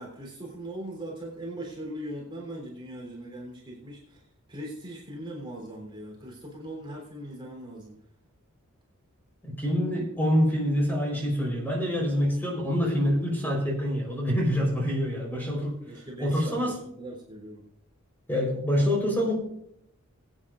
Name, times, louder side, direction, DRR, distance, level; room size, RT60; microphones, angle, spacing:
voice 1, 0.0-4.2 4.5-7.9 15.9-17.6, right 1 dB, 25° right, -2 dB, 3.5 m, -40 dB
voice 2, 9.4-15.7 16.2-16.8 18.3-19.3, equal, 10° left, -1 dB, 4.1 m, -26 dB
22.5 x 9.3 x 2.5 m, 0.73 s
head